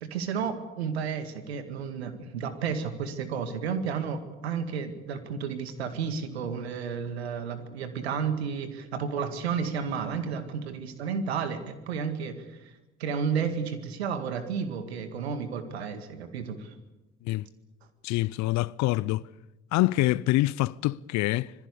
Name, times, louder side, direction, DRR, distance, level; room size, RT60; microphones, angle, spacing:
voice 1, 0.0-12.7 13.0-16.7, right 6 dB, 85° right, 2.0 m, -32 dB
voice 2, 18.0-19.3 19.7-21.5, left 18 dB, 60° left, 0.7 m, -25 dB
26.0 x 20.0 x 6.9 m
hypercardioid pair, 50°, 31 cm